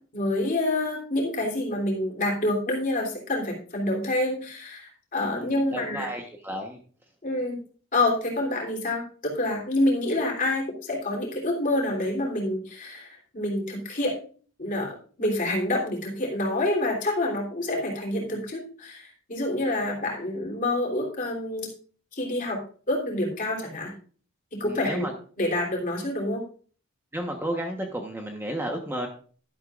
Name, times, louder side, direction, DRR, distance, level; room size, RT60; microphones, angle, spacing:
voice 1, 0.1-6.1 7.2-7.6 7.9-14.1 14.6-21.7 22.1-22.6 22.9-23.9 24.5-25.1 25.4-26.4, left 1 dB, 40° left, -1 dB, 3.3 m, -27 dB
voice 2, 5.2-6.8 24.6-25.1 27.1-29.1, right 1 dB, 10° right, 2 dB, 1.1 m, -32 dB
11.5 x 11.5 x 2.5 m, 0.43 s
head